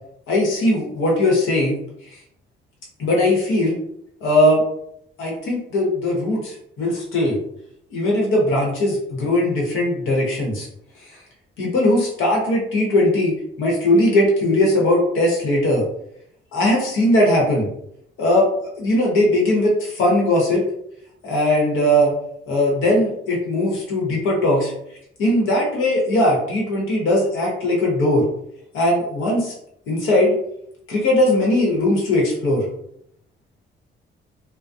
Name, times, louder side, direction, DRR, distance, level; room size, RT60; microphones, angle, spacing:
voice 1, 0.3-1.8 3.0-3.8 4.2-4.6 5.2-7.4 7.9-10.7 11.6-15.8 16.5-17.7 18.2-20.6 21.2-22.1 22.5-24.7 25.2-28.2 28.7-29.5 29.9-30.4 30.9-32.7, left 1 dB, 85° left, -2 dB, 1.0 m, -19 dB
2.3 x 2.1 x 2.6 m, 0.73 s
cardioid pair, 90°, 20 cm